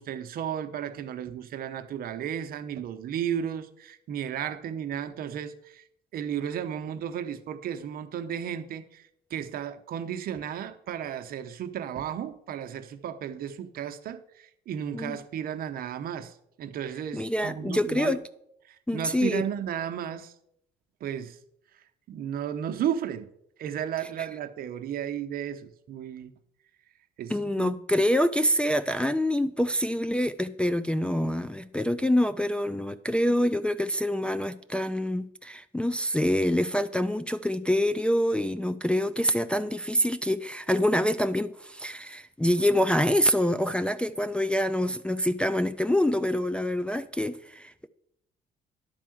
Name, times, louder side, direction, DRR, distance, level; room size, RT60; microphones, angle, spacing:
voice 1, 0.0-5.8 6.1-18.2 18.7-20.3 21.0-21.4 22.1-23.3 23.6-26.3 27.2-27.8, right 9 dB, 60° right, 0.8 m, -34 dB
voice 2, 17.1-18.2 18.9-19.4 27.3-47.9, equal, 5° left, 0.4 m, -26 dB
10.5 x 4.6 x 7.7 m
cardioid pair, 110°, 17 cm